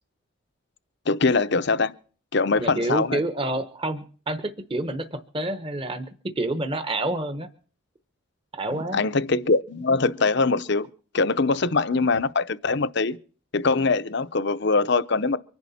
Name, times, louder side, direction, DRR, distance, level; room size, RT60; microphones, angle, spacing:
voice 1, 1.1-1.9 2.3-3.2 8.9-10.9 11.1-13.2 13.5-15.4, left 3 dB, 55° left, 0.7 m, -22 dB
voice 2, 2.6-6.1 6.4-7.5 8.5-9.0, right 2 dB, 25° right, 1.0 m, -28 dB
24.5 x 10.5 x 4.2 m
head